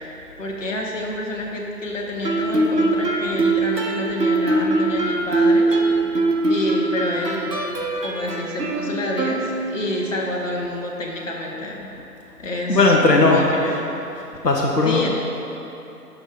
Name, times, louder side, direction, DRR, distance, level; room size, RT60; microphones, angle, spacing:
voice 1, 0.0-6.2 6.5-7.5 8.0-11.9 12.4-13.9 14.8-15.1, left 1 dB, 50° left, -2 dB, 1.6 m, -28 dB
Guitar, 2.2-10.0, right 2 dB, 85° right, 1.4 m, -21 dB
voice 2, 12.7-13.8 14.2-15.1, left 3 dB, 80° left, -1 dB, 1.2 m, -18 dB
9.3 x 6.7 x 5.0 m, 3.0 s
figure-of-eight pair, 150°, 47 cm